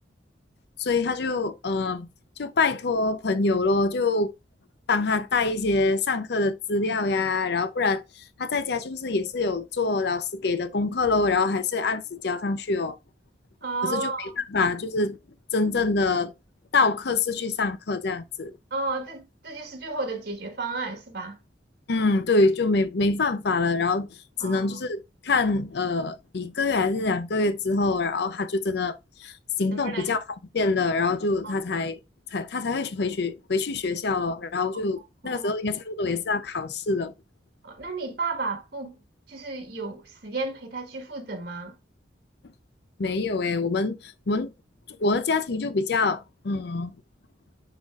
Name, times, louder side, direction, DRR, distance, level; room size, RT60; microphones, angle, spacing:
voice 1, 0.8-2.1 2.4-4.3 4.9-13.0 13.8-15.2 15.5-16.3 16.7-18.5 21.9-30.2 30.5-32.0 32.3-37.1 43.0-44.5 44.9-46.9, left 3 dB, 60° left, 0.6 m, -25 dB
voice 2, 13.6-14.3 18.7-21.4 24.4-24.8 29.7-30.1 31.4-31.6 35.2-35.5 37.6-39.0 39.3-41.7, right 3 dB, 60° right, 1.5 m, -33 dB
9.8 x 4.1 x 2.4 m
head